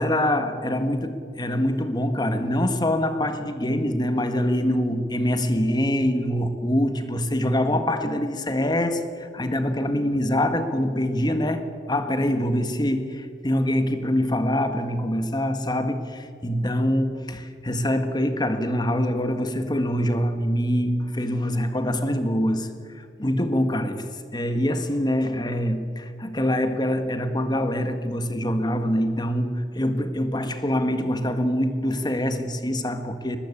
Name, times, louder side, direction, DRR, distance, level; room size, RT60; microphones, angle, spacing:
voice 1, 0.0-22.7 22.9-33.4, left 1 dB, 25° left, 1.7 m, -24 dB
22.5 x 19.5 x 8.7 m
head